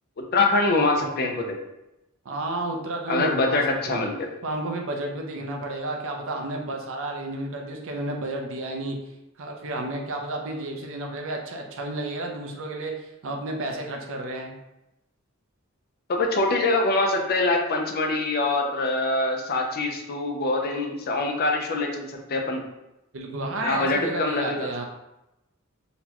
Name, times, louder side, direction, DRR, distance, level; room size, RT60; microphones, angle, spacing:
voice 1, 0.3-1.5 3.1-4.3 16.1-22.6 23.6-24.7, left 2 dB, 45° left, 2 dB, 0.5 m, -24 dB
voice 2, 2.3-4.1 4.4-9.0 9.4-12.9 13.2-14.5 23.1-24.8, right 2 dB, 65° right, 2 dB, 0.6 m, -31 dB
4.0 x 2.2 x 2.9 m, 0.93 s
head